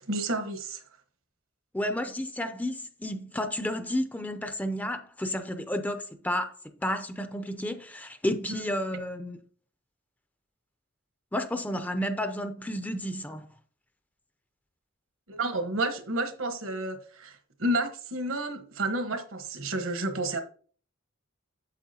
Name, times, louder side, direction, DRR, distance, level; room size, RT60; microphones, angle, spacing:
voice 1, 0.1-0.8 8.5-8.6 15.3-20.4, right 2 dB, 75° right, 1.2 m, -31 dB
voice 2, 1.7-6.5 6.8-9.4 11.3-13.5, left 1 dB, 10° left, 0.5 m, -31 dB
8.3 x 7.3 x 2.8 m
head